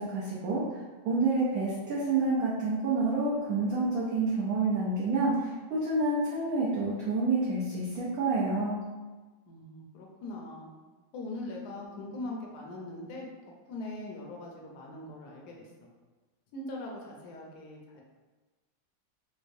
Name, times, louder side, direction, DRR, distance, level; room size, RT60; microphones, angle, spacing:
voice 1, 0.0-8.8, right 3 dB, 65° right, -7 dB, 0.9 m, -28 dB
voice 2, 9.5-10.7 11.1-13.3 13.7-15.7 16.5-18.0, left 2 dB, 70° left, -1 dB, 1.0 m, -41 dB
4.6 x 2.1 x 2.5 m, 1.3 s
omnidirectional pair, 2.1 m